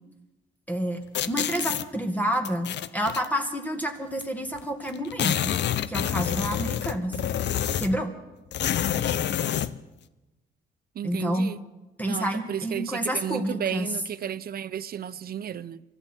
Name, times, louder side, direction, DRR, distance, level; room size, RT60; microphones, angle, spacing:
voice 1, 0.7-5.5 5.9-7.2 7.8-8.1 11.0-11.5 12.0-13.9, equal, 10° left, 2.0 m, -29 dB
sound 1, 1.1-1.9 2.4-3.3 4.2-4.3 4.5-4.6 4.9-8.0 8.5-9.7, left 10 dB, 60° left, 0.7 m, -27 dB
voice 2, 10.9-11.6 12.0-15.8, right 9 dB, 50° right, 0.6 m, -33 dB
23.5 x 13.5 x 4.5 m
cardioid pair, 90°, 20 cm